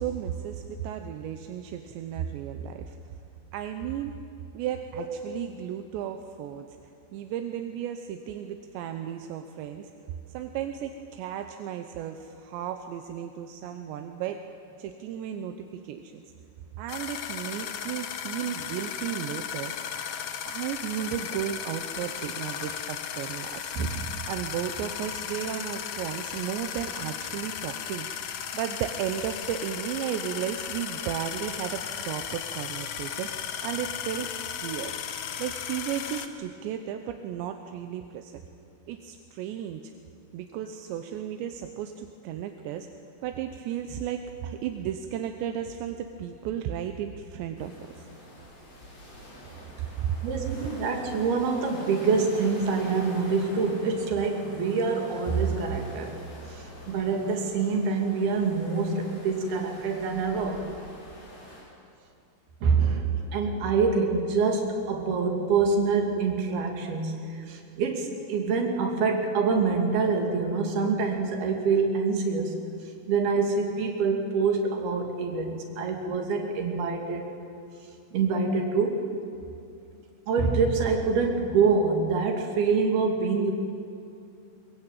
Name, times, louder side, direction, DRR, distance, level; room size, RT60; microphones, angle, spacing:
voice 1, 0.0-3.0 3.5-4.1 4.5-6.7 7.1-9.9 10.3-14.4 14.8-16.3 16.8-19.7 20.4-23.9 24.3-28.1 28.5-34.4 34.6-34.9 35.4-38.4 38.9-39.9 40.3-42.9 43.2-47.7 49.8-50.2, right 10 dB, 85° right, 6 dB, 3.2 m, -34 dB
sound 1, 16.9-36.3, left 9 dB, 65° left, 2.1 m, -35 dB
sound 2, 47.6-61.6, equal, 85° left, 9.1 m, -46 dB
voice 2, 50.2-56.2 56.5-60.7 62.6-72.5 73.1-77.3 78.1-79.1 80.3-83.5, right 4 dB, 65° right, 2 dB, 4.3 m, -26 dB
23.0 x 22.5 x 9.1 m, 2.6 s
omnidirectional pair, 5.0 m